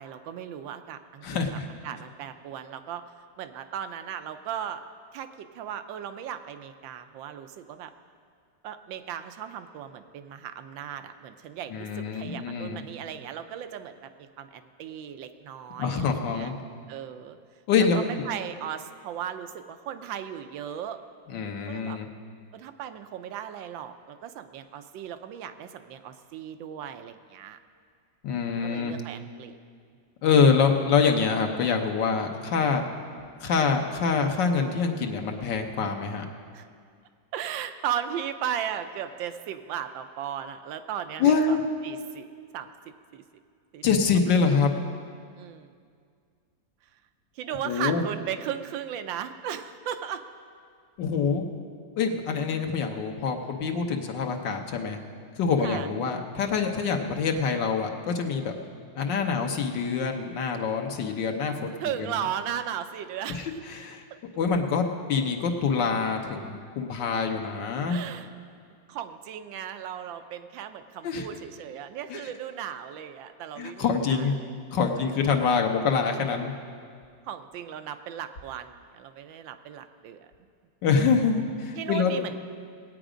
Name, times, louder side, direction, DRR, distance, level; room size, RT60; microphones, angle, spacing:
voice 1, 0.0-1.2 1.5-3.0 3.4-4.8 5.1-7.9 8.6-16.5 16.9-17.4 18.0-21.0 21.7-22.0 22.5-27.6 28.6-29.6 36.5-36.7 37.3-41.6 41.8-42.3 42.5-42.7 43.1-43.2 43.7-43.8 45.4-45.7 47.4-50.2 55.6-55.9 61.8-63.5 67.9-68.3 68.9-74.5 75.0-75.2 77.2-80.3 81.7-82.4, right 9 dB, 90° right, 9 dB, 1.4 m, -36 dB
voice 2, 1.2-1.7 11.7-12.8 15.8-16.5 17.7-18.0 21.3-22.1 28.2-28.9 30.2-32.8 33.4-36.2 41.2-41.6 43.8-44.7 47.6-48.0 51.0-51.5 52.0-55.0 55.4-58.5 59.0-61.7 63.3-64.0 64.4-68.0 71.0-71.3 72.1-72.3 73.6-74.3 74.7-76.5 80.8-82.2, left 5 dB, 75° left, 3 dB, 1.7 m, -25 dB
19.0 x 9.0 x 5.0 m, 2.2 s
omnidirectional pair, 2.0 m